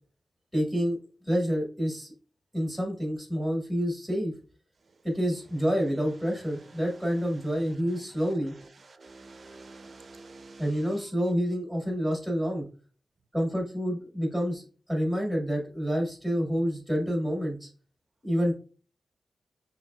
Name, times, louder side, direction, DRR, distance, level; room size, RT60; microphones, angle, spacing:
voice 1, 0.5-1.0 1.2-2.1 2.5-4.3 5.0-8.5 10.6-12.6 13.3-17.7 18.2-18.5, equal, ahead, 1.6 m, -28 dB
voice 2, 6.3-10.7, right 3 dB, 45° right, 0.5 m, -50 dB
5.6 x 3.1 x 2.2 m
wide cardioid pair, 150°, 0 cm